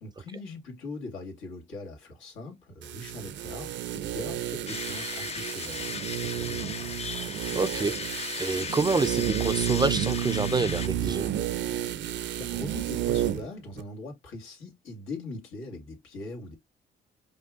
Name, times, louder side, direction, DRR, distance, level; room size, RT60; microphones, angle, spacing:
voice 1, 0.0-6.9 12.4-16.6, left 2 dB, 85° left, 2.1 m, -41 dB
sound 1, 2.8-13.5 13.8-13.9, right 11 dB, 65° right, 0.6 m, -31 dB
sound 2, 4.7-10.9, left 6 dB, 30° left, 0.5 m, -36 dB
voice 2, 7.5-7.9 8.4-11.3, right 3 dB, 20° right, 0.4 m, -27 dB
5.3 x 2.2 x 3.6 m
cardioid pair, 90°, 20 cm